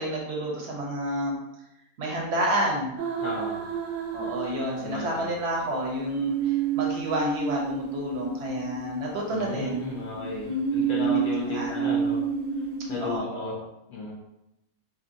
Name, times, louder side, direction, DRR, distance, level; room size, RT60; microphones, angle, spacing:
voice 1, 0.0-1.3 2.0-2.9 4.1-10.5 11.0-11.2 11.5-11.9 13.0-13.5, right 1 dB, 60° right, -2 dB, 0.9 m, -30 dB
sound 1, 3.0-5.1 6.0-9.7 10.4-13.2, right 6 dB, 75° right, 1.0 m, -29 dB
voice 2, 3.2-3.6 4.7-5.3 9.3-12.2 12.9-13.6 13.9-14.1, left 4 dB, 70° left, -4 dB, 1.0 m, -34 dB
2.8 x 2.7 x 2.5 m, 0.86 s
omnidirectional pair, 1.4 m